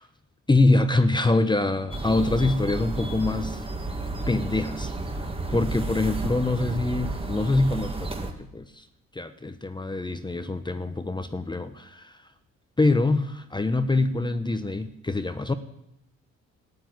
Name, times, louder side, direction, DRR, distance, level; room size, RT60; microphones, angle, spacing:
voice 1, 0.5-3.6 4.3-4.9 5.5-8.8 9.1-12.2 12.8-15.5, left 2 dB, 15° left, 9 dB, 0.9 m, -24 dB
sound 1, 1.9-8.3, right 2 dB, 20° right, 1.8 m, -32 dB
12.5 x 8.6 x 9.4 m, 0.80 s
cardioid pair, 90°, 30 cm